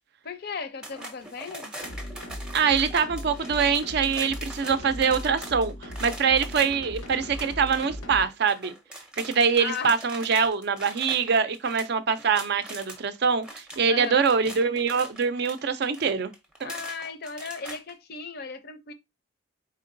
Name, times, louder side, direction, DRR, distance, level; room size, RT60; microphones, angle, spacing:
voice 1, 0.2-1.7 9.6-10.0 13.9-14.2 16.6-18.9, left 5 dB, 45° left, 0.5 m, -36 dB
sound 1, 0.8-13.0 13.3-17.9, right 1 dB, 5° right, 0.6 m, -42 dB
sound 2, 1.8-8.2, equal, 80° left, 0.8 m, -38 dB
voice 2, 2.5-8.7 9.2-16.3 16.6-16.7, right 6 dB, 50° right, 0.4 m, -24 dB
4.3 x 3.7 x 2.5 m
head